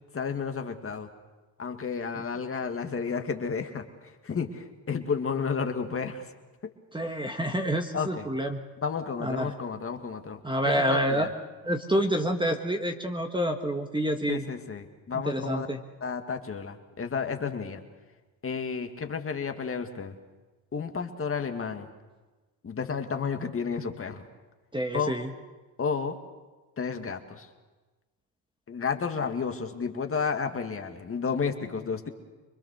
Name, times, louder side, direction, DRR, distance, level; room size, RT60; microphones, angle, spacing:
voice 1, 0.1-1.1 1.6-6.3 6.6-6.7 7.9-8.3 8.8-11.3 14.3-15.7 16.0-17.8 18.4-20.2 20.7-21.9 22.6-24.2 24.9-25.1 25.8-26.2 26.8-27.5 28.7-32.1, left 5 dB, 25° left, 6 dB, 2.0 m, -32 dB
voice 2, 6.9-8.6 9.2-9.5 10.4-11.3 11.6-14.4 15.1-15.8 24.7-25.3, equal, 10° right, 5 dB, 1.6 m, -28 dB
25.5 x 21.5 x 6.6 m, 1.2 s
supercardioid pair, 95°, 50 cm